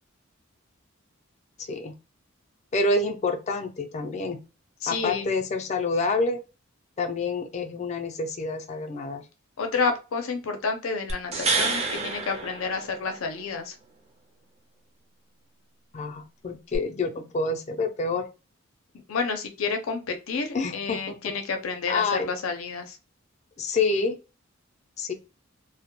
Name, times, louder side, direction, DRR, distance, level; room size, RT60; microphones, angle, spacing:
voice 1, 1.6-1.9 2.7-4.4 4.9-6.4 7.0-9.2 15.9-18.3 20.5-21.3 21.9-22.3 23.6-24.2 25.0-25.1, left 3 dB, 35° left, 5 dB, 0.4 m, -27 dB
voice 2, 4.8-5.3 9.6-13.8 19.1-23.0, left 4 dB, 90° left, 6 dB, 0.5 m, -30 dB
sound 1, 11.1-13.4 16.7-16.8, right 4 dB, 30° right, 0.5 m, -28 dB
2.2 x 2.0 x 2.8 m, 0.30 s
head